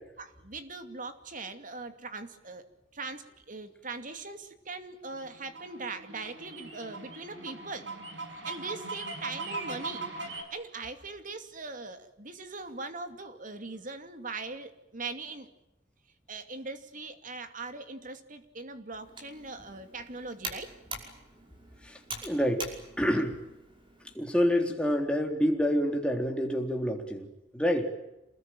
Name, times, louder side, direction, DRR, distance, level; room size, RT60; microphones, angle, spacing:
voice 1, 0.2-2.6 2.9-7.9 8.4-10.1 10.5-15.5 16.3-20.7 23.1-23.2, right 3 dB, 45° right, 8 dB, 2.6 m, -40 dB
sound 1, 5.1-10.4, right 3 dB, 90° right, 6.2 m, -40 dB
Computer keyboard, 19.0-24.1, right 2 dB, 30° right, 5.5 m, -44 dB
voice 2, 21.8-22.7 23.0-23.4 24.1-27.9, equal, 5° left, 2 dB, 3.7 m, -28 dB
27.5 x 20.5 x 9.1 m, 0.92 s
head